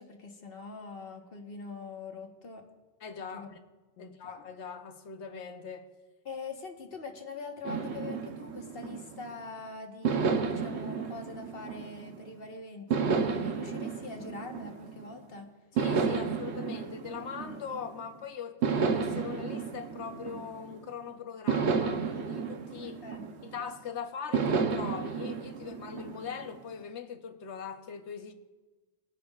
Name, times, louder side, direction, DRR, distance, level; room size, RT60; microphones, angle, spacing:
voice 1, 0.0-2.6 3.3-3.5 4.0-4.1 6.2-15.5 16.1-16.2 22.8-23.5, left 4 dB, 60° left, 1.4 m, -43 dB
voice 2, 3.0-3.5 4.0-5.9 15.7-23.0 23.4-28.3, left 7 dB, 90° left, 1.1 m, -41 dB
sound 1, 7.6-9.4 10.0-12.3 12.9-15.2 15.8-18.0 18.6-20.9 21.5-23.7 24.3-26.6, right 5 dB, 85° right, 1.1 m, -32 dB
20.0 x 9.4 x 2.4 m
omnidirectional pair, 1.1 m